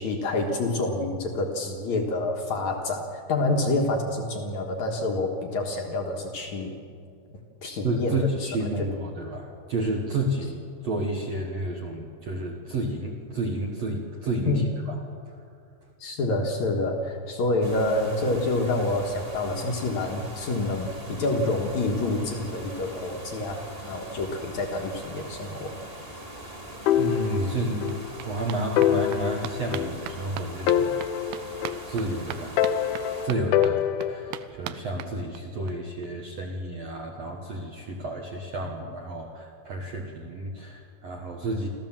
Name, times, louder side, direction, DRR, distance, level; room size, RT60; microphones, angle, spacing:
voice 1, 0.0-6.8 7.6-8.2 8.4-8.5 14.5-14.7 16.0-25.8, left 2 dB, 60° left, 1 dB, 2.0 m, -27 dB
voice 2, 7.8-10.6 10.8-14.9 15.3-15.4 26.2-26.3 27.0-30.9 31.9-32.9 33.2-41.7, right 1 dB, 70° right, 1 dB, 1.6 m, -31 dB
sound 1, 17.6-33.3, right 1 dB, 20° right, 1.8 m, -42 dB
sound 2, 26.9-28.0 28.3-28.4 28.8-30.3 30.7-32.1 32.6-34.4, left 10 dB, 85° left, 3.1 m, -25 dB
sound 3, 26.9-27.0 27.2-35.7 36.0-36.1 36.4-36.5 36.7-36.8, right 12 dB, 90° right, 2.2 m, -41 dB
26.5 x 14.5 x 7.4 m, 2.4 s
omnidirectional pair, 5.4 m